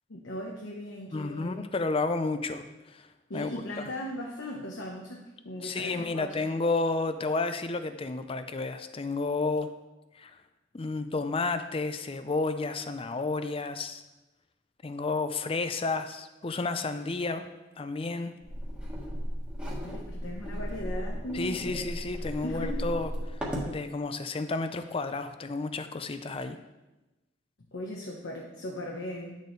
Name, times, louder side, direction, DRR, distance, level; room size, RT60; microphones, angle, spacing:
voice 1, 0.1-1.7 3.3-6.4 19.8-22.1 22.4-22.9 27.7-29.4, left 1 dB, 80° left, -1 dB, 0.9 m, -38 dB
voice 2, 1.1-3.1 3.3-3.5 5.6-9.7 10.2-10.4 10.7-14.0 14.8-17.5 17.8-18.3 21.3-23.1 23.7-26.6, left 3 dB, 30° left, 10 dB, 0.5 m, -31 dB
sound 1, 18.4-23.7, equal, 5° right, 1.4 m, -35 dB
10.0 x 6.7 x 3.2 m, 1.1 s
head